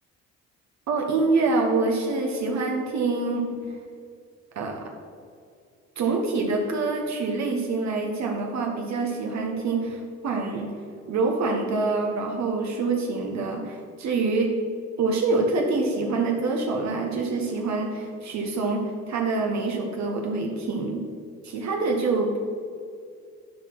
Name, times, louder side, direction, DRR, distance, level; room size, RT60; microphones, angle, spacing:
voice 1, 0.9-3.4 4.5-4.8 6.0-10.7 11.1-14.5 15.0-21.0 21.4-22.3, right 3 dB, 65° right, 1 dB, 1.2 m, -26 dB
11.0 x 4.5 x 4.7 m, 2.3 s
cardioid pair, 90°, 30 cm